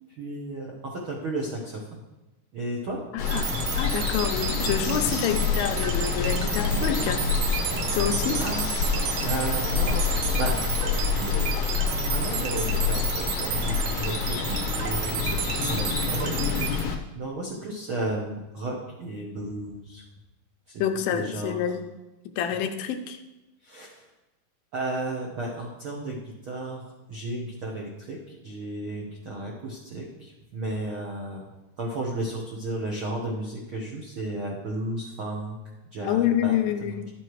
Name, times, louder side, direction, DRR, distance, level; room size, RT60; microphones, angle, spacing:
voice 1, 0.1-2.0 2.5-3.0 8.3-10.9 11.2-11.5 12.0-20.0 20.7-21.6 23.6-24.1 24.7-31.5 31.8-35.6 35.9-37.0, right 2 dB, 70° right, -3 dB, 1.2 m, -34 dB
voice 2, 3.1-7.3 7.9-8.4 20.8-21.9 22.4-23.2 36.0-37.1, left 9 dB, 90° left, 7 dB, 2.5 m, -27 dB
Water, 3.2-17.0, left 5 dB, 70° left, 1.4 m, -27 dB
sound 1, 3.3-16.8, right 9 dB, 85° right, 2.5 m, -32 dB
12.5 x 7.7 x 3.2 m, 1.0 s
omnidirectional pair, 4.1 m